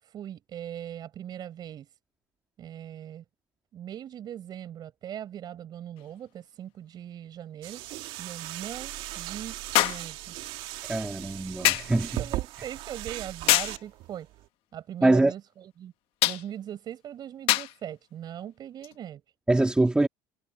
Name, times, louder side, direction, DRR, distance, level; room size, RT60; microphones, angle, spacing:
voice 1, 0.0-1.9 2.6-3.2 3.7-7.8 8.2-10.3 10.8-10.9 11.2-11.3 12.2-14.3 14.7-15.9 16.2-19.2, right 10 dB, 45° right, 6.7 m, -40 dB
sound 1, 6.0-6.1 9.7-10.1 11.6-12.0 13.5-13.8 16.2-16.5 17.5-17.8 18.8-18.9, left 17 dB, 65° left, 1.4 m, -24 dB
sound 2, 7.6-14.5, right 17 dB, 65° right, 2.1 m, -38 dB
voice 2, 10.9-12.2 15.0-15.3 19.5-20.1, right 2 dB, 10° right, 3.1 m, -23 dB
supercardioid pair, 105°, 10 cm